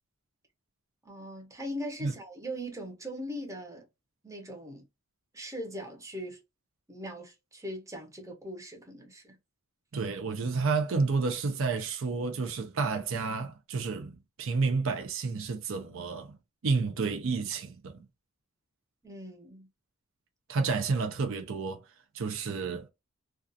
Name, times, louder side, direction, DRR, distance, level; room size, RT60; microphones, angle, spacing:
voice 1, 1.0-3.9 4.2-4.8 5.3-6.4 6.9-9.4 19.0-19.7, equal, 15° right, 0.7 m, -40 dB
voice 2, 9.9-16.4 16.6-18.0 20.5-21.8 22.1-22.9, right 4 dB, 60° right, 0.5 m, -30 dB
2.4 x 2.3 x 2.6 m
head